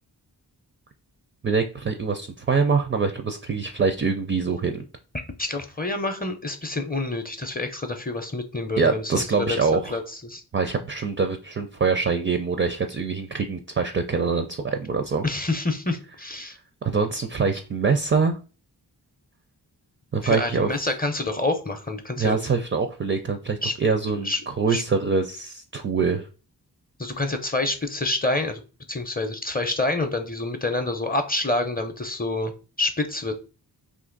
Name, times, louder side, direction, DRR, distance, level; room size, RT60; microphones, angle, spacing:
voice 1, 1.4-4.8 8.8-10.0 10.5-15.2 16.8-18.3 20.1-20.7 22.2-26.3, right 5 dB, 30° right, 6 dB, 0.4 m, -24 dB
voice 2, 5.4-10.4 15.2-16.6 20.2-22.4 23.6-23.7 24.1-24.4 24.7-24.8 27.0-28.6 28.9-33.4, left 2 dB, 20° left, 7 dB, 0.6 m, -27 dB
2.8 x 2.6 x 3.8 m, 0.34 s
wide cardioid pair, 65°, 41 cm